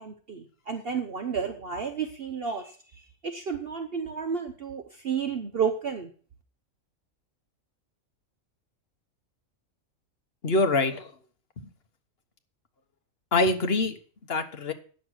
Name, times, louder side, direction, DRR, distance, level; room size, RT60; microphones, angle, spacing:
voice 1, 0.0-2.7 3.2-6.1, right 6 dB, 50° right, 6 dB, 1.0 m, -31 dB
voice 2, 10.4-11.1 11.6-11.7 13.3-14.0 14.3-14.7, left 2 dB, 50° left, 7 dB, 1.3 m, -24 dB
9.4 x 6.6 x 6.2 m, 0.42 s
omnidirectional pair, 1.4 m